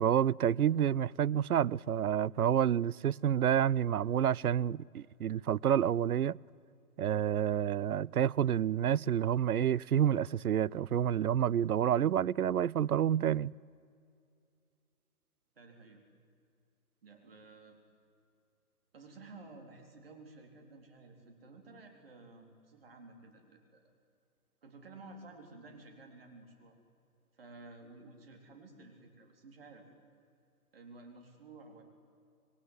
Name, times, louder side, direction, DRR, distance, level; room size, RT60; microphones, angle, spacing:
voice 1, 0.0-6.4 7.0-13.5, right 10 dB, 70° right, 0.6 m, -29 dB
voice 2, 15.6-16.0 17.0-17.8 18.9-23.9 24.6-26.8 27.3-29.9 30.7-31.8, right 3 dB, 40° right, 4.0 m, -53 dB
26.5 x 21.5 x 9.5 m
hypercardioid pair, 175°, 46 cm